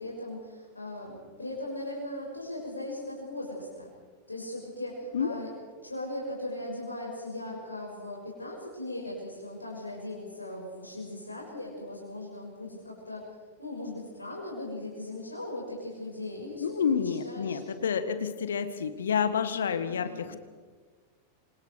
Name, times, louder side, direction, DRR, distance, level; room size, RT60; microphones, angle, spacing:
voice 1, 0.0-3.9 4.3-5.5 5.8-13.2 13.6-17.8 19.8-20.4, left 1 dB, 80° left, -3 dB, 6.3 m, -39 dB
voice 2, 16.6-20.4, left 7 dB, 65° left, 11 dB, 1.7 m, -29 dB
27.5 x 26.5 x 4.8 m, 1.5 s
figure-of-eight pair, 90°, 0 cm